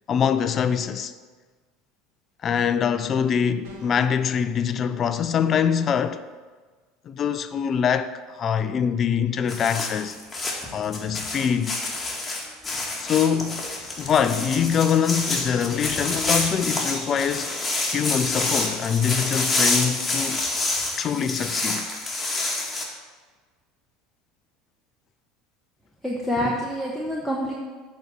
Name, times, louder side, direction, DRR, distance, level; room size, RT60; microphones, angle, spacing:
voice 1, 0.1-1.1 2.4-6.2 7.1-10.2 10.7-11.8 12.9-13.7 14.0-20.5 21.0-21.9, left 7 dB, 40° left, 0.5 m, -24 dB
sound 1, 3.6-4.2, right 4 dB, 65° right, 1.6 m, -46 dB
sound 2, 9.5-22.8, left 2 dB, 20° left, 1.9 m, -27 dB
voice 2, 26.0-27.5, equal, ahead, 1.2 m, -26 dB
8.0 x 4.2 x 7.0 m
hypercardioid pair, 75°, 0 cm